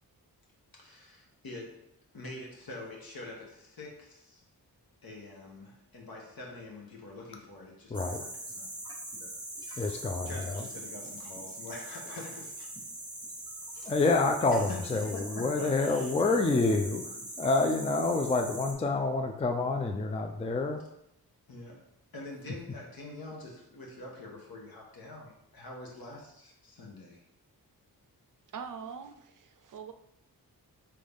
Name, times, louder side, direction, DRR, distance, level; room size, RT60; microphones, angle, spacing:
voice 1, 0.7-1.7 2.1-4.4 5.0-8.3 8.6-8.7 9.2-9.3 9.6-12.7 13.7-13.9 14.7-14.8 15.1-16.1 21.5-21.8 22.1-27.2, left 2 dB, 65° left, -2 dB, 1.3 m, -45 dB
voice 2, 7.9-8.2 9.8-10.6 13.8-20.8, left 3 dB, 15° left, 4 dB, 0.4 m, -28 dB
sound 1, 7.9-18.7, right 1 dB, 10° right, 1.1 m, -42 dB
voice 3, 28.5-29.9, right 6 dB, 55° right, 7 dB, 0.5 m, -43 dB
3.8 x 3.2 x 3.5 m, 0.80 s
cardioid pair, 65°, 38 cm